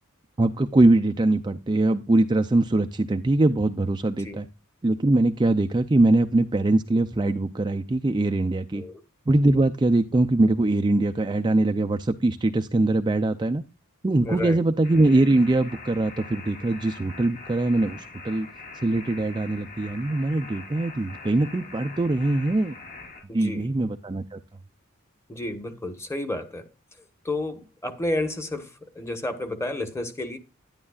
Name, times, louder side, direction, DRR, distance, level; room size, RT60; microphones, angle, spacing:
voice 1, 0.4-4.5 4.8-8.8 9.3-13.6 14.0-18.5 18.8-22.8 23.3-24.4, right 2 dB, 20° right, 0.4 m, -22 dB
voice 2, 14.2-14.6 23.3-23.7 25.3-26.6 27.2-30.4, left 1 dB, 15° left, 1.2 m, -31 dB
sound 1, 14.8-23.2, left 3 dB, 45° left, 5.2 m, -43 dB
11.0 x 10.5 x 2.4 m
head